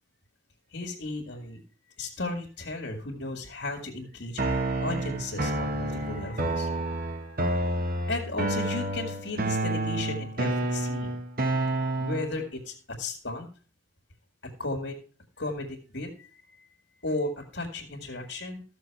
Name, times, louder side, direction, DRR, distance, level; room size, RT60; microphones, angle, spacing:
voice 1, 0.7-1.6 2.0-7.4 8.1-11.2 12.0-13.5 14.6-15.0 15.4-16.7 17.0-18.6, left 2 dB, 75° left, 2 dB, 2.0 m, -35 dB
sound 1, 4.4-12.4, right 2 dB, 55° right, 1.3 m, -29 dB
14.0 x 6.7 x 4.7 m, 0.39 s
head